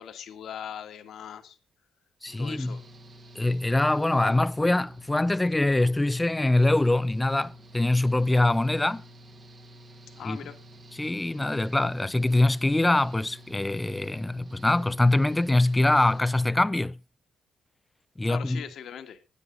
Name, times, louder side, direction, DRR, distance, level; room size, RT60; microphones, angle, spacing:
voice 1, 0.0-1.6 2.4-2.8 10.1-10.6 18.2-19.2, left 9 dB, 70° left, 1.7 m, -40 dB
voice 2, 2.2-2.8 3.4-9.0 10.2-10.4 11.0-17.0 18.2-18.6, left 2 dB, 15° left, 0.5 m, -24 dB
Engine / Mechanical fan, 2.3-16.2, right 1 dB, 40° right, 1.5 m, -50 dB
13.5 x 9.7 x 3.9 m
cardioid pair, 90°, 0 cm